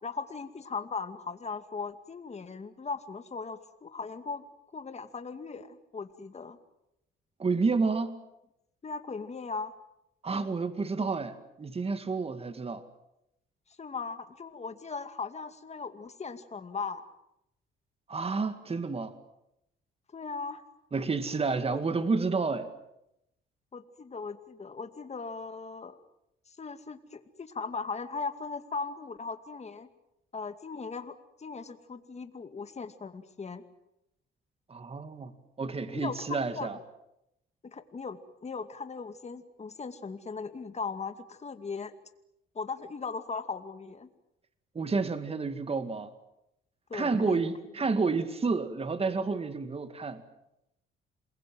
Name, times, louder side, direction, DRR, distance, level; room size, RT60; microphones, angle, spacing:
voice 1, 0.0-4.4 4.7-6.6 8.8-9.7 13.8-17.0 20.1-20.6 23.7-26.0 26.6-29.9 30.3-31.1 31.4-33.6 35.9-36.7 37.6-41.9 42.5-44.1 46.9-47.5, left 4 dB, 35° left, 2.3 m, -38 dB
voice 2, 7.4-8.2 10.2-12.8 18.1-19.2 20.9-22.7 34.7-35.3 35.6-36.8 44.7-46.1 46.9-50.2, right 4 dB, 30° right, 2.2 m, -30 dB
27.5 x 22.0 x 7.7 m
cardioid pair, 90°, 20 cm